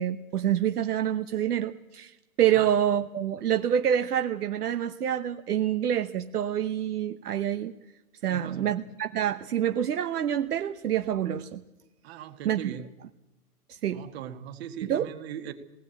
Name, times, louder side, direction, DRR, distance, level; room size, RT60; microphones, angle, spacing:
voice 1, 0.0-2.1 2.4-7.7 8.2-11.6 12.4-12.6 13.8-14.1 14.8-15.1, right 10 dB, 75° right, 8 dB, 1.1 m, -27 dB
voice 2, 8.2-8.8 12.0-12.9 13.9-15.5, right 10 dB, 40° right, 7 dB, 1.9 m, -39 dB
19.0 x 18.5 x 8.4 m, 1.0 s
hypercardioid pair, 150°, 47 cm